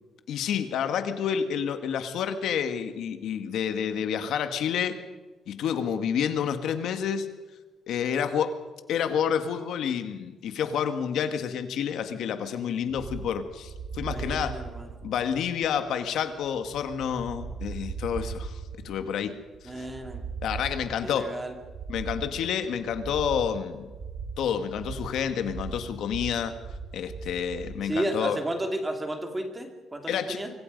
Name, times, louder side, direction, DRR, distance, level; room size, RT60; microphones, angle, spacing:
voice 1, 0.3-5.0 5.5-7.3 7.9-8.5 8.9-14.6 15.0-19.3 19.6-19.8 20.4-21.3 21.9-23.9 24.4-26.5 26.9-28.4 30.1-30.4, left 8 dB, 70° left, 9 dB, 1.7 m, -29 dB
sound 1, 12.9-27.8, right 5 dB, 60° right, 5.4 m, -39 dB
voice 2, 14.0-14.9 19.6-20.2 21.0-21.5 27.8-30.5, right 1 dB, 10° right, 4 dB, 2.6 m, -32 dB
25.0 x 24.5 x 5.3 m, 1.3 s
cardioid pair, 170°, 0 cm